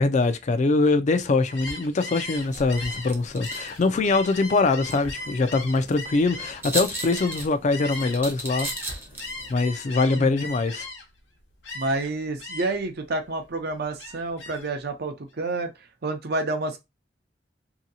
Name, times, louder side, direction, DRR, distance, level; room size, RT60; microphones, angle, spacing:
voice 1, 0.0-8.7 9.5-10.9, left 3 dB, 40° left, 0.4 m, -23 dB
Gull seagull, 1.4-8.2 8.5-11.2 11.6-12.1 12.4-12.9 13.3-14.7, left 2 dB, 75° left, 0.9 m, -38 dB
sound 1, 2.4-9.5, right 2 dB, 15° right, 0.7 m, -38 dB
voice 2, 11.7-15.7 16.0-16.8, right 2 dB, 60° right, 0.7 m, -29 dB
2.8 x 2.7 x 2.6 m
head